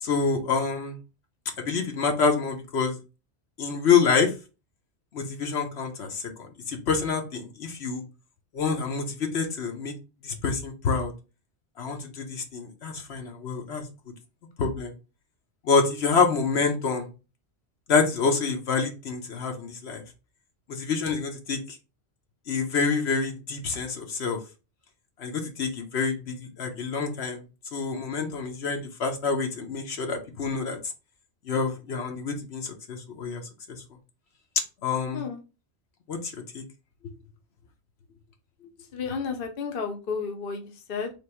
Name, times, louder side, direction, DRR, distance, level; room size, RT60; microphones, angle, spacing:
voice 1, 0.0-1.0 1.6-3.0 3.6-4.3 5.1-8.0 8.5-9.9 10.2-11.1 11.8-13.9 14.6-14.9 15.6-17.1 17.9-20.0 20.7-21.8 22.5-24.4 25.2-27.4 27.7-30.8 31.4-33.4 33.7-33.8 34.8-35.2 36.1-36.6, left 5 dB, 75° left, 3 dB, 1.1 m, -27 dB
voice 2, 38.9-41.1, left 5 dB, 55° left, 4 dB, 0.9 m, -32 dB
3.5 x 3.0 x 4.3 m, 0.31 s
omnidirectional pair, 1.1 m